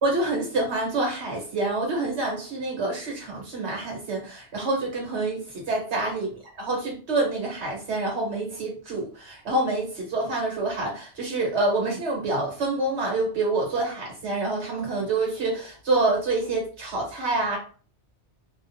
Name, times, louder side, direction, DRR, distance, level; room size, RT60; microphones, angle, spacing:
voice 1, 0.0-6.3 6.6-17.6, right 2 dB, 70° right, -1 dB, 1.4 m, -27 dB
2.4 x 2.4 x 2.6 m, 0.40 s
omnidirectional pair, 1.2 m